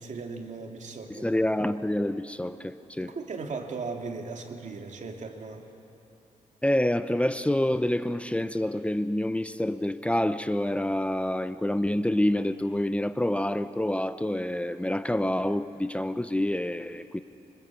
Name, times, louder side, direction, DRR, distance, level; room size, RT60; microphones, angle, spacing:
voice 1, 0.0-1.3 3.0-5.7, right 4 dB, 65° right, 3 dB, 2.5 m, -37 dB
voice 2, 1.1-3.2 6.6-17.2, left 1 dB, 10° left, 11 dB, 0.7 m, -27 dB
26.5 x 25.0 x 8.5 m, 2.8 s
cardioid pair, 90°, 13 cm